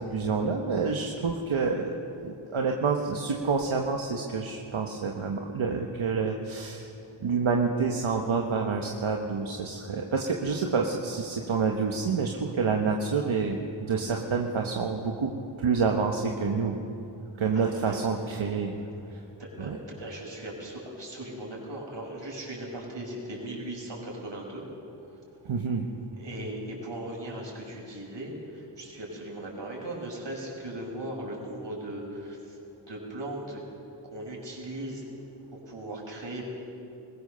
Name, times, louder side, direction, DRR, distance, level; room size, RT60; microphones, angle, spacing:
voice 1, 0.0-6.9 7.2-16.8 17.4-18.8 19.1-19.2 19.6-19.8 25.4-25.9, right 5 dB, 85° right, 2 dB, 1.3 m, -28 dB
voice 2, 17.5-18.0 18.8-18.9 19.4-24.6 26.2-32.6 32.9-33.6 34.1-35.1 35.7-36.5, right 1 dB, 65° right, -2 dB, 6.3 m, -38 dB
21.5 x 19.0 x 6.8 m, 2.7 s
cardioid pair, 50°, 47 cm